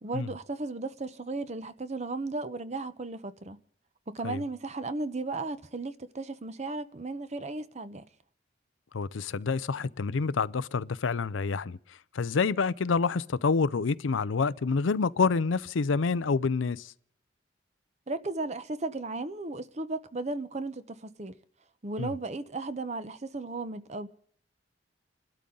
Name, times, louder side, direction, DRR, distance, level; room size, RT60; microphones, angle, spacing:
voice 1, 0.0-3.6 4.1-8.0 18.1-21.4 21.8-24.1, right 2 dB, 35° right, 0.8 m, -35 dB
voice 2, 8.9-11.8 12.1-16.9 22.0-22.1, left 4 dB, 90° left, 0.5 m, -27 dB
29.0 x 12.5 x 3.9 m
head